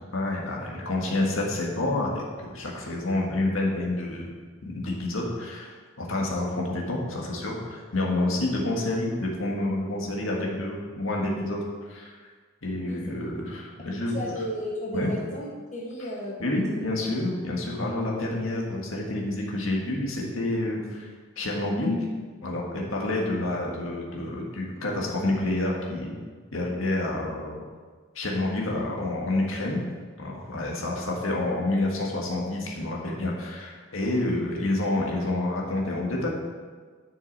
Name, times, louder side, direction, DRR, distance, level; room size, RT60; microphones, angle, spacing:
voice 1, 0.1-4.3 4.6-11.6 11.9-12.1 12.6-14.2 14.9-15.1 16.4-21.1 21.4-22.1 22.4-26.1 26.5-27.6 28.2-29.8 30.2-36.3, left 2 dB, 70° left, -2 dB, 1.8 m, -28 dB
voice 2, 12.7-13.2 14.1-16.8, equal, 35° left, -3 dB, 1.2 m, -35 dB
10.5 x 6.6 x 4.1 m, 1.5 s
head